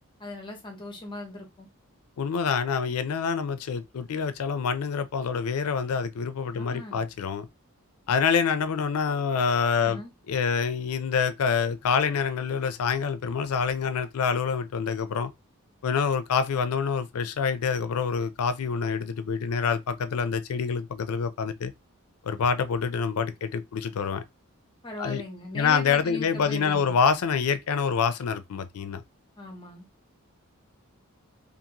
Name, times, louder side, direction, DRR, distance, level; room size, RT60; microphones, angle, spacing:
voice 1, 0.2-1.7 6.5-7.0 9.8-10.1 24.8-27.0 29.4-29.9, left 1 dB, 20° left, 0.7 m, -39 dB
voice 2, 2.2-7.5 8.1-10.0 10.3-15.3 15.8-21.7 22.2-24.2 25.0-25.2 25.5-29.0, left 6 dB, 90° left, 0.4 m, -26 dB
2.6 x 2.5 x 2.8 m
head